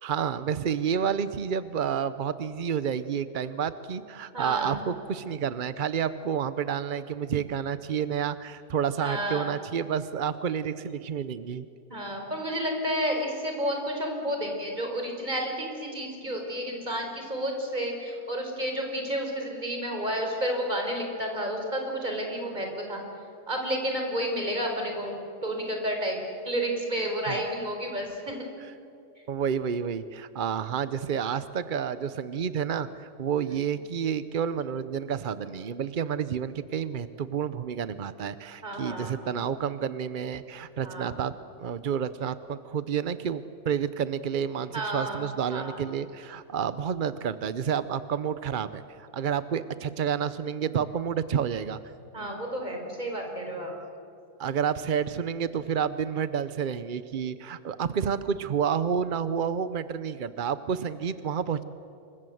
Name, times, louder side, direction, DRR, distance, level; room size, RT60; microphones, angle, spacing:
voice 1, 0.0-11.7 27.3-27.4 29.3-41.3 41.6-51.8 53.7-53.9 54.4-61.6, right 7 dB, 60° right, 13 dB, 0.5 m, -30 dB
voice 2, 4.3-4.8 9.0-9.5 11.9-23.0 23.5-25.2 25.4-28.4 38.6-39.2 40.8-41.1 44.7-45.8 52.1-53.7, equal, 25° right, 2 dB, 4.6 m, -31 dB
27.5 x 23.5 x 7.8 m, 2.6 s
omnidirectional pair, 1.7 m